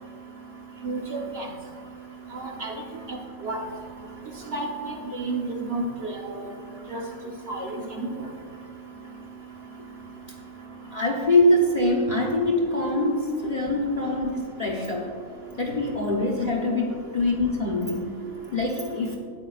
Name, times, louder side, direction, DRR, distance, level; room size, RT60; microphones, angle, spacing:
voice 1, 0.8-1.5 2.3-2.7 3.1-3.2 3.4-3.6 4.5-5.8 6.9-7.0 7.5-7.7 8.0-8.1, right 3 dB, 50° right, 0 dB, 1.2 m, -31 dB
voice 2, 10.9-15.1 15.6-18.1 18.5-19.2, left 1 dB, 35° left, 0 dB, 0.8 m, -24 dB
13.5 x 9.3 x 2.4 m, 2.3 s
omnidirectional pair, 1.5 m